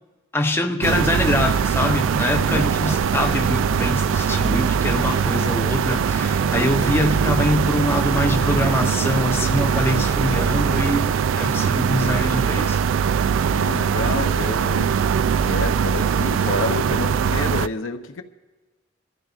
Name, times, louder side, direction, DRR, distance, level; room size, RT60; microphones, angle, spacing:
voice 1, 0.3-12.8, left 1 dB, 10° left, 0.6 m, -24 dB
sound 1, 0.8-17.7, right 7 dB, 75° right, 0.3 m, -21 dB
sound 2, 1.8-11.1, equal, 10° right, 1.2 m, -37 dB
voice 2, 2.3-2.7 13.5-15.0 15.4-18.2, left 3 dB, 90° left, 0.7 m, -29 dB
26.5 x 13.5 x 2.5 m
head